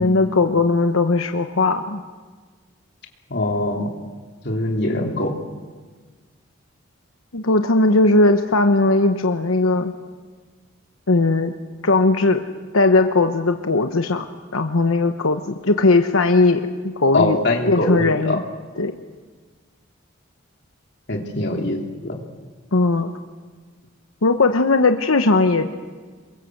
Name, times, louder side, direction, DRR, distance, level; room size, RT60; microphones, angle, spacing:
voice 1, 0.0-2.0 7.3-9.9 11.1-11.5 11.8-12.4 12.7-14.3 14.5-17.4 17.7-18.4 18.8-18.9 22.7-23.1 24.2-25.7, left 3 dB, 90° left, 7 dB, 1.1 m, -18 dB
voice 2, 3.3-3.9 4.4-5.4 17.1-18.4 21.1-21.8 22.0-22.2, left 2 dB, 55° left, 2 dB, 3.2 m, -22 dB
27.0 x 22.5 x 7.9 m, 1.4 s
head